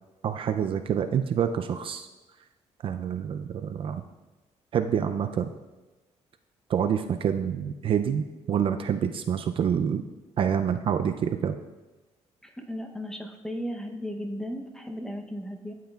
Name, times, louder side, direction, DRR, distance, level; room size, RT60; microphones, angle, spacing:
voice 1, 0.2-2.1 2.8-4.0 4.7-5.5 6.7-10.0 10.4-11.6, right 8 dB, 50° right, 8 dB, 0.4 m, -27 dB
voice 2, 12.4-15.7, equal, 5° left, 3 dB, 0.7 m, -35 dB
12.5 x 7.6 x 2.3 m, 1.1 s
cardioid pair, 145°, 12 cm